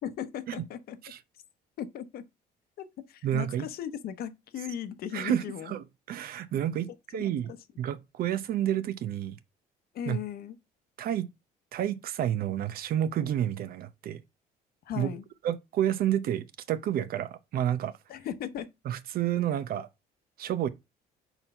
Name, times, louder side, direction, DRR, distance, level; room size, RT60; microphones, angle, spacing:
voice 1, 0.0-1.0 1.8-2.2 2.8-5.7 7.1-7.6 9.9-10.5 14.8-15.2 18.1-18.7, left 9 dB, 65° left, 0.9 m, -37 dB
voice 2, 3.2-3.7 5.1-7.5 7.8-9.4 10.1-10.2 11.0-11.3 11.7-14.2 15.0-15.1 15.4-17.9 18.8-19.9 20.4-20.7, right 11 dB, 60° right, 0.7 m, -30 dB
4.5 x 4.1 x 5.4 m
cardioid pair, 110°, 17 cm